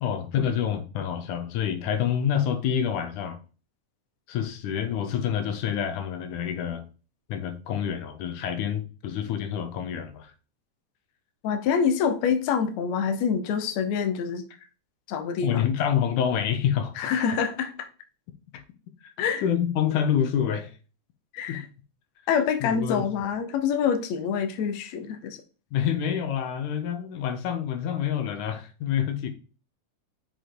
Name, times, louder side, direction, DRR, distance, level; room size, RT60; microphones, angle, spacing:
voice 1, 0.0-3.4 4.3-6.9 7.3-10.3 15.4-16.9 19.0-19.1 19.4-20.7 21.5-21.6 22.6-23.1 25.7-29.3, left 9 dB, 85° left, 2.5 m, -27 dB
voice 2, 11.4-14.4 15.1-15.7 17.0-17.9 19.2-19.4 21.3-21.7 22.3-25.4, left 7 dB, 70° left, 2.0 m, -26 dB
6.6 x 5.2 x 3.8 m
omnidirectional pair, 3.5 m